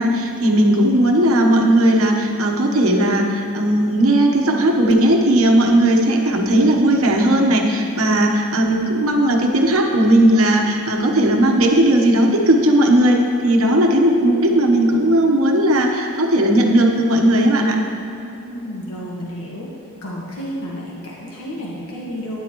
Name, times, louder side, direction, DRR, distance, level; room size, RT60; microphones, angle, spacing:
voice 1, 0.0-17.8, right 1 dB, 80° right, 2 dB, 1.2 m, -16 dB
voice 2, 18.4-19.7 20.0-22.4, equal, 80° left, -4 dB, 1.4 m, -31 dB
12.5 x 10.0 x 3.1 m, 3.0 s
head